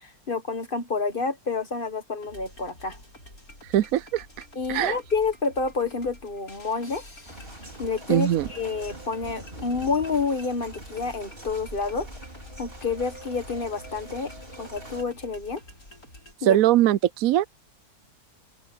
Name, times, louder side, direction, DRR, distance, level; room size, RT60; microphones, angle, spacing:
voice 1, 0.0-3.0 4.5-7.0 7.8-12.1 12.6-14.3 14.6-15.6 16.4-16.6, left 4 dB, 35° left, 1.7 m, -29 dB
sound 1, 2.2-16.3, left 1 dB, 65° left, 8.0 m, -49 dB
voice 2, 3.6-4.3 4.7-5.0 8.1-8.5 16.4-17.4, right 12 dB, 70° right, 1.0 m, -21 dB
sound 2, 7.3-15.0, right 1 dB, 35° right, 5.3 m, -43 dB
open air
omnidirectional pair, 1.6 m